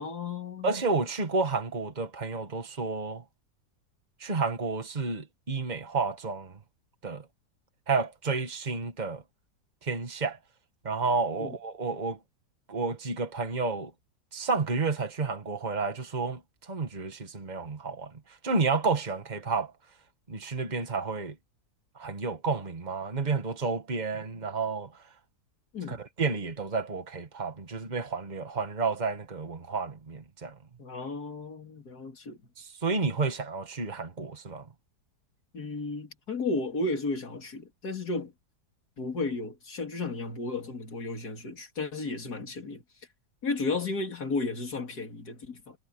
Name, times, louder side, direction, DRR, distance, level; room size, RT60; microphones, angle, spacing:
voice 1, 0.0-0.7 11.4-11.5 25.7-26.0 30.8-32.4 35.5-38.3 39.0-42.8 43.4-45.8, left 3 dB, 70° left, 3.7 m, -33 dB
voice 2, 0.6-3.2 4.2-6.5 7.0-7.2 7.9-9.2 9.8-10.4 10.8-12.2 12.7-13.9 14.3-16.4 16.7-18.1 18.4-19.7 20.3-21.3 22.0-24.9 25.9-30.5 32.6-34.7, right 4 dB, 25° right, 1.9 m, -30 dB
omnidirectional pair, 1.7 m